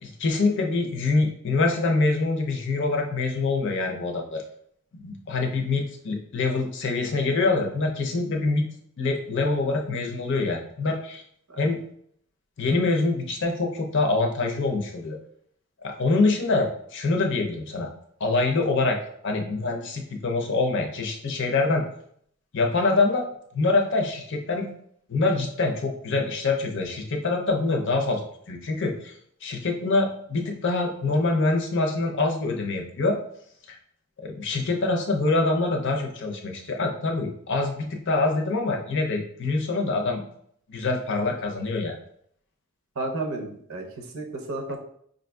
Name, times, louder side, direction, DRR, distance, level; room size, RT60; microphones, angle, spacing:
voice 1, 0.0-4.4 5.0-8.7 9.0-11.2 11.6-11.8 12.6-15.2 15.8-17.9 18.2-19.0 19.2-21.8 22.5-23.3 23.5-24.7 25.1-29.1 29.4-33.2 34.2-40.2 40.7-42.0, left 3 dB, 55° left, 2 dB, 0.6 m, -25 dB
voice 2, 43.0-44.8, right 2 dB, 70° right, 2 dB, 0.6 m, -32 dB
5.1 x 2.6 x 2.2 m, 0.67 s
head